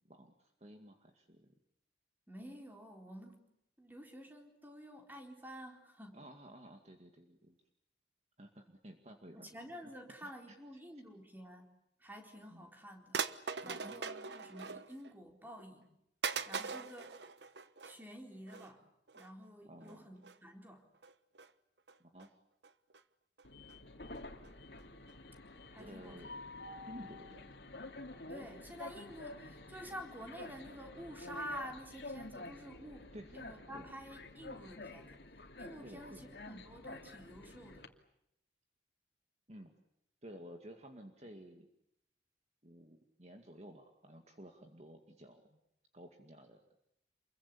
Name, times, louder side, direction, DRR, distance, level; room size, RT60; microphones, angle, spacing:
voice 1, 0.0-1.5 6.1-7.6 8.4-9.5 9.8-9.9 10.2-10.6 12.5-12.7 13.6-14.0 19.7-20.1 22.0-22.4 25.8-26.3 26.9-27.6 33.1-33.4 33.7-33.9 35.8-36.3 39.5-39.7 40.2-41.7 42.6-45.6 45.9-46.7, equal, 35° right, 4 dB, 2.1 m, -53 dB
voice 2, 2.3-3.4 3.8-6.2 9.3-11.7 12.0-13.2 13.6-15.9 16.5-17.1 17.8-18.8 19.1-20.9 25.7-26.2 28.3-35.2 35.6-37.9, equal, 10° right, 2 dB, 4.1 m, -50 dB
sound 1, 12.4-12.5 13.1-15.1 15.5-15.6 16.2-18.0 18.5-18.7 19.1-19.3 19.8-20.0 20.2-20.4 21.0-21.5 21.9-22.3 22.6-23.0 23.4-23.5 23.7-23.8 24.1-24.2 24.4-24.5 24.8-24.9 25.1-25.2, right 5 dB, 70° right, 1.2 m, -41 dB
Train, 23.4-37.9, left 2 dB, 65° left, 2.6 m, -49 dB
28.5 x 22.5 x 8.6 m, 0.80 s
head